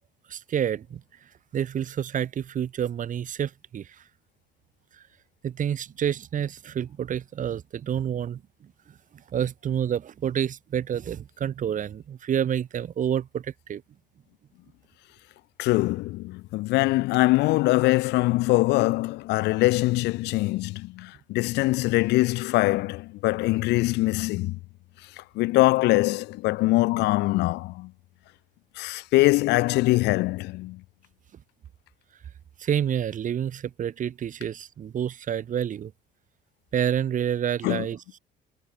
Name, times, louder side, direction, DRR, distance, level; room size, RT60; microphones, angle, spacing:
voice 1, 0.3-1.0 1.5-3.9 5.4-8.4 9.3-13.8 32.6-35.9 36.7-38.2, right 9 dB, 50° right, 4.2 m, -28 dB
voice 2, 15.6-24.6 25.2-27.9 28.8-30.8 37.6-37.9, left 20 dB, 90° left, 2.0 m, -23 dB
cardioid pair, 110°, 17 cm